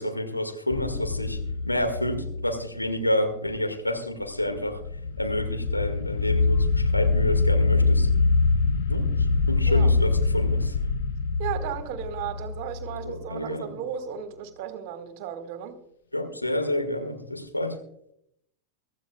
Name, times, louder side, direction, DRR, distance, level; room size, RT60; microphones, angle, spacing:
voice 1, 0.0-1.4 1.7-4.8 5.2-8.1 8.9-10.8 13.0-13.8 16.1-17.8, left 1 dB, 85° left, 1.9 m, -29 dB
sound 1, 0.7-3.0 4.4-13.3, left 3 dB, 60° left, 0.9 m, -24 dB
voice 2, 11.4-15.7, right 9 dB, 45° right, 1.8 m, -35 dB
23.5 x 13.5 x 2.3 m
figure-of-eight pair, 90°, 0 cm